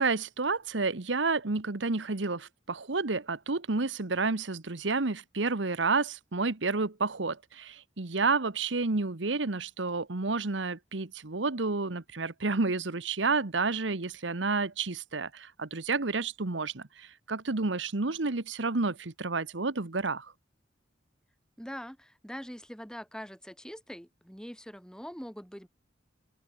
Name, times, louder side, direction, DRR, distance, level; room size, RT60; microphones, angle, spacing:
voice 1, 0.0-20.3, right 3 dB, 80° right, 1.3 m, -30 dB
voice 2, 21.6-25.7, equal, 5° left, 3.4 m, -43 dB
head